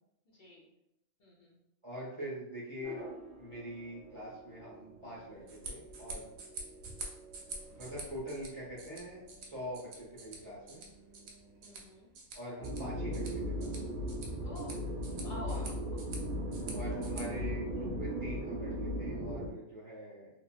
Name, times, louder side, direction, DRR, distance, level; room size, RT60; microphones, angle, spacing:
voice 1, 1.2-1.6 11.6-12.1 14.4-14.8 15.2-16.0, left 1 dB, 50° left, -4 dB, 0.7 m, -48 dB
voice 2, 1.8-3.0 3.4-6.3 7.7-10.8 12.3-13.7 15.5-15.7 16.7-20.3, equal, 25° right, -9 dB, 0.9 m, -44 dB
sound 1, 2.8-11.9, right 2 dB, 10° left, 0.9 m, -54 dB
sound 2, 5.3-17.2, right 3 dB, 75° right, 1.0 m, -48 dB
sound 3, 12.6-19.5, equal, 55° right, 0.6 m, -36 dB
2.9 x 2.8 x 2.3 m, 0.83 s
omnidirectional pair, 1.4 m